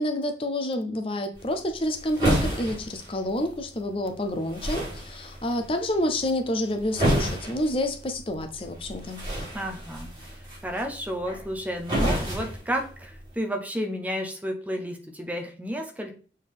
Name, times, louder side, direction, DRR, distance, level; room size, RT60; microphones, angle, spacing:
voice 1, 0.0-9.2, left 1 dB, 30° left, 0.6 m, -28 dB
sound 1, 1.3-13.4, equal, 25° right, 3.6 m, -31 dB
voice 2, 9.5-10.1 10.6-16.1, equal, 10° right, 0.7 m, -31 dB
6.8 x 4.3 x 3.6 m
head